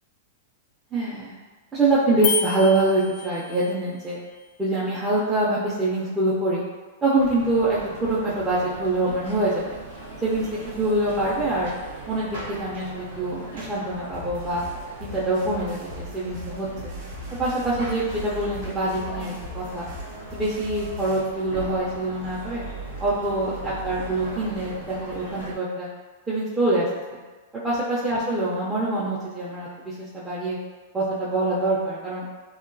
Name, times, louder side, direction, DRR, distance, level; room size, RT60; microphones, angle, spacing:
voice 1, 0.9-1.4 1.7-4.2 4.6-6.6 7.0-9.7 10.2-10.5 10.8-11.7 12.1-14.6 15.0-16.9 17.4-19.9 20.3-22.6 23.0-25.9 26.3-26.9 27.6-30.6 30.9-32.2, right 2 dB, 15° right, -10 dB, 0.5 m, -25 dB
sound 1, 2.2-3.8, left 6 dB, 40° left, 0.4 m, -29 dB
sound 2, 7.2-25.5, right 2 dB, 90° right, 0.8 m, -39 dB
sound 3, 14.1-21.2, left 1 dB, 40° right, 0.8 m, -40 dB
2.8 x 2.2 x 2.5 m, 1.3 s
hypercardioid pair, 140°, 0 cm